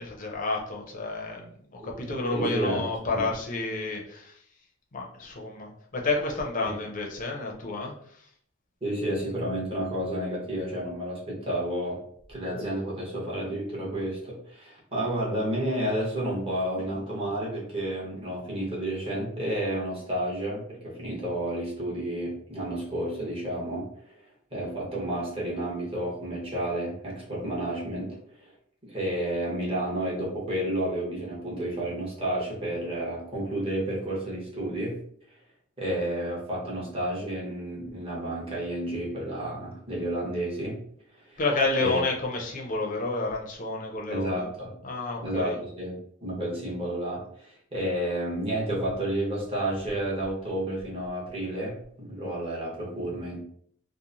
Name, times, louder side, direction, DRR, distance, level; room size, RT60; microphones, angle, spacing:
voice 1, 0.0-1.5 1.7-4.3 4.9-7.9 41.4-44.5 44.8-45.6, left 3 dB, 40° left, 0 dB, 0.6 m, -30 dB
voice 2, 1.8-3.3 8.8-12.0 12.3-24.2 24.5-28.5 28.8-35.0 35.8-40.8 41.2-41.4 41.8-42.0 44.1-44.7 45.2-53.4, right 1 dB, 25° right, -5 dB, 1.1 m, -31 dB
3.0 x 2.1 x 2.5 m, 0.64 s
head